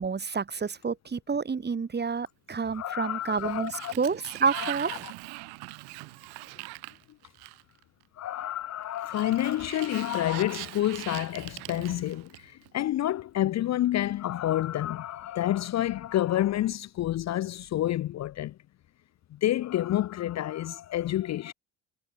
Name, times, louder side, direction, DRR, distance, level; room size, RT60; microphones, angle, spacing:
voice 1, 0.0-5.0, right 5 dB, 25° right, 2.1 m, -29 dB
voice 2, 2.7-3.9 4.5-4.7 8.2-18.5 19.3-21.5, left 13 dB, 45° left, 0.6 m, -29 dB
Sliding door, 3.2-7.8 9.0-12.7, right 30 dB, 80° right, 6.2 m, -41 dB
supercardioid pair, 75°, 38 cm